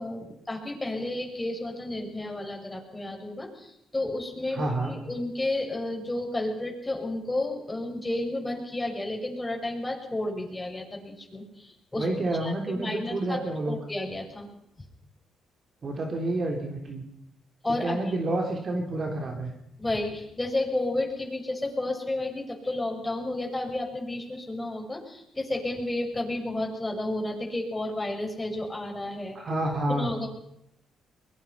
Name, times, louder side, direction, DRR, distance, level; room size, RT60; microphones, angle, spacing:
voice 1, 0.0-13.4 13.7-14.5 17.6-18.1 19.8-29.4 29.9-30.3, left 1 dB, 15° left, 1 dB, 6.3 m, -32 dB
voice 2, 4.5-5.0 11.9-13.8 15.8-17.0 17.7-19.5 29.4-30.1, right 2 dB, 45° right, 2 dB, 3.6 m, -29 dB
23.5 x 21.5 x 5.8 m, 0.80 s
cardioid pair, 90°, 0 cm